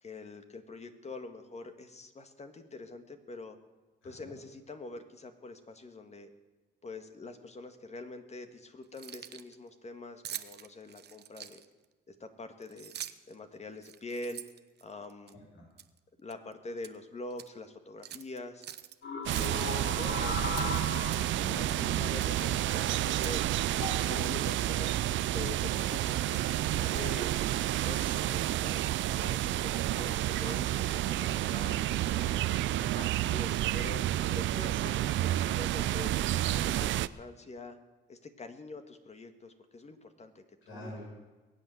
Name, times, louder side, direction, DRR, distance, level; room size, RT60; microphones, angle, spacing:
voice 1, 0.0-3.6 4.0-6.3 6.8-11.6 12.1-12.9 13.3-14.4 14.8-15.4 16.2-18.7 19.6-20.7 21.5-23.4 24.1-27.3 27.8-31.8 32.9-36.2 36.6-37.8 38.1-40.9, left 2 dB, 35° left, 8 dB, 1.8 m, -45 dB
voice 2, 4.0-4.3 15.5-15.6 23.8-24.0 31.9-32.9 40.7-41.0, left 1 dB, 85° left, -3 dB, 7.1 m, -48 dB
Keys jangling, 8.8-9.5 10.2-11.8 12.6-13.3 13.8-15.3 15.8-16.0 16.3-17.0 17.3-17.5 18.0-18.9 19.3-20.1 20.5-21.4 21.7-21.9 22.2-23.5 23.7-23.8 24.2-24.4 25.0-25.2 25.6-27.3, right 10 dB, 55° right, 0.9 m, -45 dB
sound 1, 19.0-22.9 23.7-24.1 25.0-25.4, left 4 dB, 65° left, 2.6 m, -39 dB
sound 2, 19.3-37.1, right 14 dB, 75° right, 0.5 m, -30 dB
21.5 x 8.5 x 7.9 m, 1.2 s
cardioid pair, 90°, 20 cm